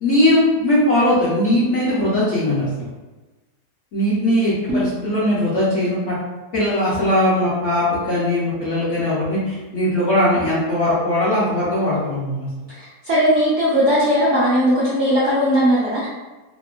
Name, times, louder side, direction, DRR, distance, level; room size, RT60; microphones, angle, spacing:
voice 1, 0.0-2.9 3.9-6.2 6.5-12.5, left 1 dB, 60° left, -8 dB, 0.8 m, -19 dB
voice 2, 12.7-16.1, equal, 65° right, -7 dB, 0.7 m, -18 dB
2.9 x 2.1 x 2.3 m, 1.2 s
omnidirectional pair, 1.8 m